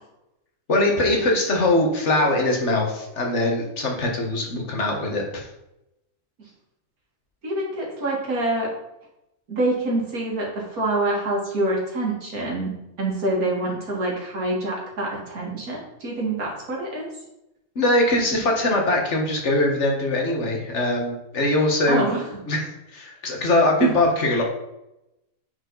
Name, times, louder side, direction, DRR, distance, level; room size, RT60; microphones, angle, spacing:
voice 1, 0.7-5.5 17.7-22.1 22.5-24.4, left 2 dB, 50° left, 1 dB, 1.8 m, -22 dB
voice 2, 7.4-8.7 9.5-12.7 13.0-17.1 21.9-22.2 23.8-23.9, right 2 dB, 75° right, -3 dB, 2.7 m, -25 dB
9.3 x 4.8 x 4.0 m, 0.90 s
omnidirectional pair, 1.6 m